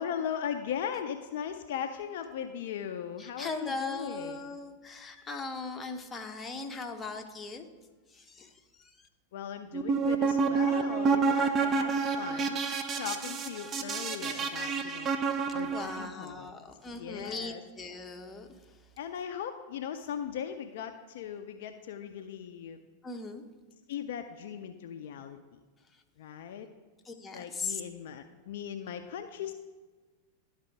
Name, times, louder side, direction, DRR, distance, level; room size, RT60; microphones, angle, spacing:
voice 1, 0.0-4.4 9.3-12.6 12.9-15.1 15.5-16.5 16.9-17.6 19.0-22.8 23.9-25.6 26.2-26.7 27.3-29.5, left 8 dB, 55° left, 7 dB, 0.4 m, -38 dB
voice 2, 3.2-7.7 8.1-9.1 15.7-18.9 23.0-23.4 25.9-26.0 27.0-27.8, left 3 dB, 15° left, 4 dB, 0.8 m, -39 dB
sound 1, 9.7-16.1, right 5 dB, 25° right, 0.6 m, -29 dB
11.5 x 4.1 x 4.7 m, 1.3 s
figure-of-eight pair, 90°, 0 cm